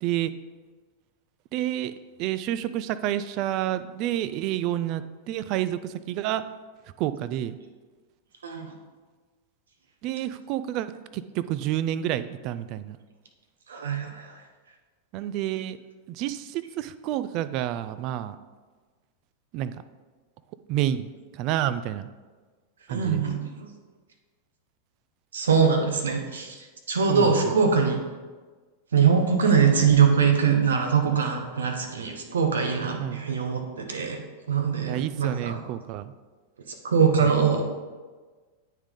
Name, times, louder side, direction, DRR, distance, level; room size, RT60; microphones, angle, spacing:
voice 1, 0.0-0.3 1.5-1.9 2.2-6.4 7.0-7.6 10.0-10.9 11.1-13.0 15.1-15.8 16.1-18.4 19.5-19.7 20.7-22.1 22.9-23.2 27.1-27.5 29.8-30.0 33.0-33.2 34.8-36.1 37.2-37.3, right 12 dB, 45° right, 13 dB, 0.3 m, -29 dB
voice 2, 13.7-14.3 22.9-23.7 25.3-26.5 26.9-28.0 28.9-34.2 34.5-35.6 36.8-37.6, right 6 dB, 75° right, 4 dB, 1.0 m, -22 dB
9.3 x 3.6 x 3.7 m, 1.4 s
hypercardioid pair, 95°, 0 cm